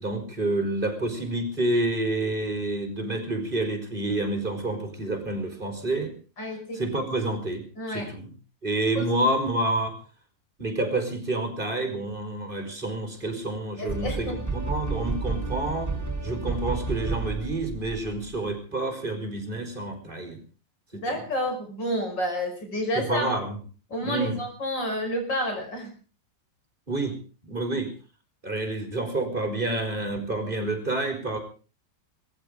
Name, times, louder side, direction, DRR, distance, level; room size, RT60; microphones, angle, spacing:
voice 1, 0.0-6.1 6.7-8.3 8.6-10.0 10.6-15.9 16.2-20.4 20.9-21.2 22.9-23.6 24.0-24.3 26.9-27.2 27.4-27.9 28.4-31.4, right 2 dB, 25° right, 6 dB, 4.8 m, -28 dB
voice 2, 6.4-6.8 7.8-8.1 8.9-9.0 13.8-14.3 20.9-23.3 23.9-25.9, equal, 75° left, 4 dB, 6.4 m, -30 dB
sound 1, 13.9-18.4, right 3 dB, 10° right, 2.8 m, -31 dB
19.0 x 15.0 x 5.0 m, 0.38 s
omnidirectional pair, 2.0 m